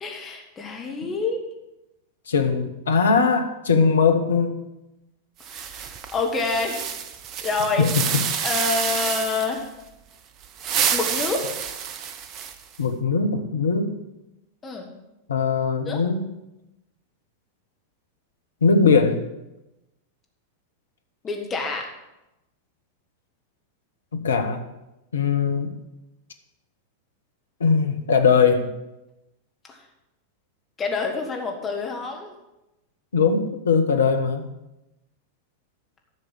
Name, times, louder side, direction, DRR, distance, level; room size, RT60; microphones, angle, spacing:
voice 1, 0.0-1.4 5.5-6.9 7.4-7.9 8.4-9.7 10.9-11.5 14.6-14.9 15.9-16.0 21.2-21.9 29.7-29.8 30.8-32.3, left 4 dB, 20° left, 1 dB, 1.7 m, -27 dB
voice 2, 2.3-4.6 8.0-8.2 12.8-14.0 15.3-16.3 18.6-19.2 24.1-24.6 25.1-25.7 27.6-28.7 33.1-34.5, left 5 dB, 70° left, 6 dB, 1.2 m, -20 dB
sound 1, 5.4-9.6 10.4-12.8, right 8 dB, 35° right, 0.8 m, -28 dB
11.0 x 6.6 x 7.7 m, 0.94 s
figure-of-eight pair, 90°, 0 cm